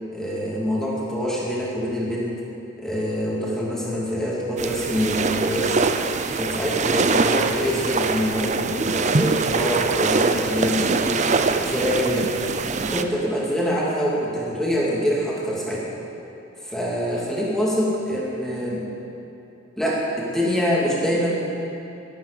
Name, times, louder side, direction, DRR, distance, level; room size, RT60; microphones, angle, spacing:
voice 1, 0.1-2.3 2.8-5.8 6.3-11.3 11.6-12.3 12.8-15.9 16.6-18.9 19.8-21.7, equal, ahead, -5 dB, 2.4 m, -25 dB
sound 1, 4.6-13.0, right 4 dB, 35° right, 0.6 m, -23 dB
11.5 x 11.5 x 6.7 m, 2.9 s
head